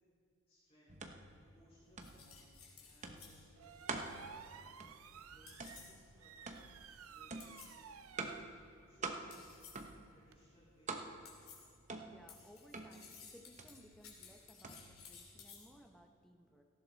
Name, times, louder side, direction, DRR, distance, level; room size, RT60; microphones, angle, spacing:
voice 1, 0.5-2.5 2.8-4.5 5.1-5.5 5.8-7.5 8.9-11.0, equal, 30° left, -8 dB, 4.4 m, -67 dB
sound 1, 0.9-16.0, right 3 dB, 35° right, 0.9 m, -48 dB
sound 2, 1.8-10.4, right 7 dB, 90° right, 0.6 m, -57 dB
sound 3, 2.0-3.5 5.5-6.0 7.4-7.8 9.3-9.9 11.3-11.8 12.3-15.7, left 6 dB, 85° left, 2.9 m, -57 dB
voice 2, 12.0-16.6, equal, ahead, 3 dB, 1.0 m, -61 dB
18.0 x 14.0 x 4.1 m, 2.4 s
head